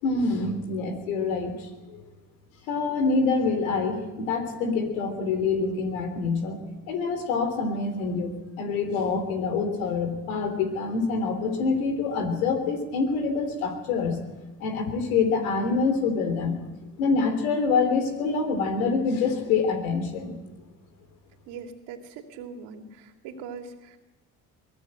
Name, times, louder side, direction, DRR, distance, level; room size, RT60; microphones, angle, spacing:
voice 1, 0.0-2.0 2.7-6.6 6.9-14.2 14.6-16.6 17.0-20.4, left 4 dB, 90° left, 7 dB, 3.7 m, -26 dB
voice 2, 21.5-24.0, right 6 dB, 80° right, 4 dB, 2.9 m, -41 dB
23.5 x 17.5 x 7.8 m, 1.1 s
hypercardioid pair, 60°, 41 cm